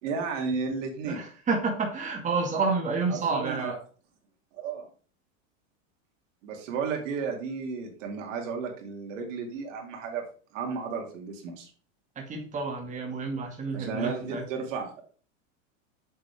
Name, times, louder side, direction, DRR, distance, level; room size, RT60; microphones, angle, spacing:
voice 1, 0.0-1.3 3.1-3.7 4.5-4.9 6.4-10.2 10.5-11.7 13.7-15.0, right 5 dB, 70° right, 2 dB, 3.0 m, -33 dB
voice 2, 1.0-3.8 12.2-14.4, right 4 dB, 20° right, 0 dB, 2.0 m, -29 dB
7.7 x 7.5 x 3.5 m, 0.40 s
supercardioid pair, 135°, 39 cm